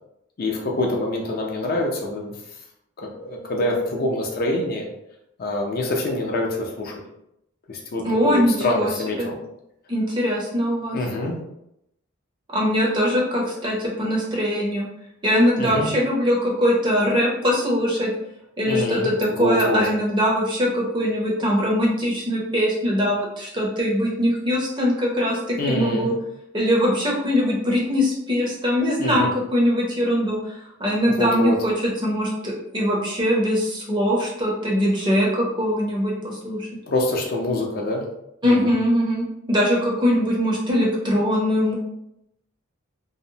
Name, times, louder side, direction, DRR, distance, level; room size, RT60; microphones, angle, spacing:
voice 1, 0.4-2.3 3.0-4.9 5.4-6.9 7.7-9.4 10.9-11.4 15.6-15.9 18.7-19.8 25.6-26.1 29.0-29.3 31.2-31.6 36.9-38.0 38.4-38.7, left 1 dB, 45° left, 0 dB, 0.4 m, -25 dB
voice 2, 8.0-8.9 9.2-9.3 9.9-11.0 12.5-14.9 15.2-18.1 18.6-26.1 26.5-36.7 38.4-41.8, equal, 20° right, -3 dB, 0.5 m, -22 dB
2.7 x 2.0 x 2.6 m, 0.81 s
head